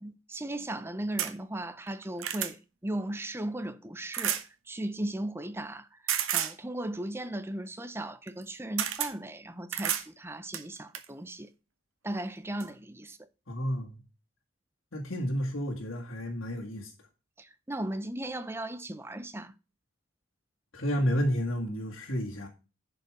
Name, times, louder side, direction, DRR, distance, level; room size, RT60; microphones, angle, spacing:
voice 1, 0.0-4.4 4.7-6.0 6.3-11.5 12.0-13.3 17.4-19.5, right 1 dB, 10° right, 0.6 m, -37 dB
sound 1, 1.2-1.3 1.9-2.5 4.1-4.5 6.1-6.6 8.3-8.4 8.8-9.1 9.7-10.1 10.5-11.1 12.1-12.2 12.6-12.7, right 10 dB, 80° right, 1.1 m, -31 dB
voice 2, 13.5-14.0 14.9-16.9 20.7-22.5, equal, 80° left, 2.2 m, -31 dB
10.5 x 5.2 x 4.9 m
head